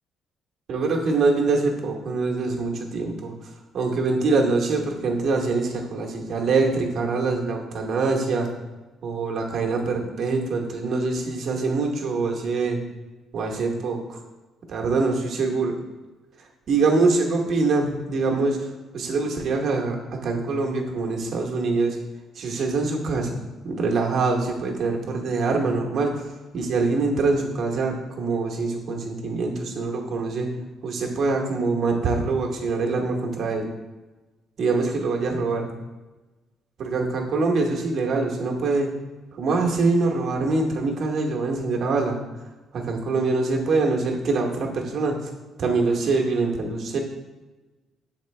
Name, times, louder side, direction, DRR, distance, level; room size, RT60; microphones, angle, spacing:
voice 1, 0.7-3.3 3.7-8.5 9.0-12.8 13.3-14.2 14.7-15.8 16.7-18.6 18.9-20.0 20.2-22.0 22.4-23.4 23.6-26.3 26.5-30.5 30.8-33.7 34.6-35.7 36.8-38.9 39.4-42.2 42.7-45.3 45.6-47.0, right 3 dB, 60° right, 1 dB, 1.0 m, -24 dB
6.5 x 4.4 x 3.2 m, 1.2 s
cardioid pair, 85°, 0 cm